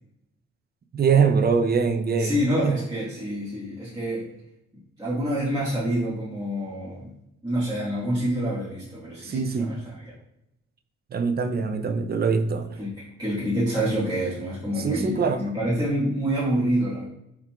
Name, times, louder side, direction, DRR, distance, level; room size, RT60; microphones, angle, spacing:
voice 1, 0.9-2.8 9.2-9.7 11.1-12.7 14.8-15.5, right 5 dB, 35° right, 7 dB, 0.5 m, -23 dB
voice 2, 2.2-4.3 5.0-7.1 7.4-10.1 12.8-17.1, equal, 15° right, -10 dB, 1.3 m, -27 dB
4.4 x 3.6 x 2.3 m, 0.83 s
cardioid pair, 90°, 30 cm